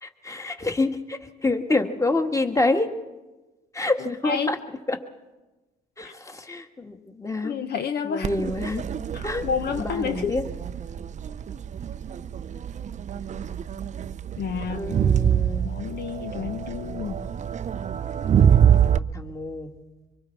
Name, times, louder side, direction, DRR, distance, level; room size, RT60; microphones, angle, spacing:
voice 1, 0.0-2.9 3.7-4.6 4.9-5.0 6.0-7.5 8.0-8.8 9.2-9.4 9.8-10.4 14.5-15.7 18.8-19.7, left 2 dB, 15° left, 5 dB, 1.9 m, -27 dB
voice 2, 4.2-4.6 6.0-6.1 7.4-8.3 9.1-10.4 14.4-15.0 15.6-17.3, left 7 dB, 55° left, 8 dB, 0.9 m, -30 dB
Crowd, 8.2-19.0, right 8 dB, 35° right, 0.6 m, -25 dB
25.0 x 24.0 x 4.7 m, 1.1 s
supercardioid pair, 85°, 20 cm